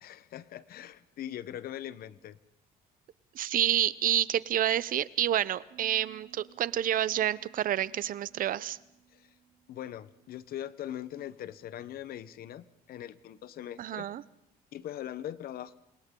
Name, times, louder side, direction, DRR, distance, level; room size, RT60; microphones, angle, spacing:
voice 1, 0.0-2.4 9.1-9.3 9.7-14.1 14.7-15.7, left 11 dB, 65° left, 16 dB, 1.0 m, -41 dB
voice 2, 3.3-8.8 13.8-14.2, right 11 dB, 55° right, 19 dB, 0.7 m, -28 dB
Bass guitar, 5.7-11.9, right 9 dB, 85° right, 3.6 m, -61 dB
28.5 x 26.5 x 3.8 m, 0.80 s
cardioid pair, 110°, 17 cm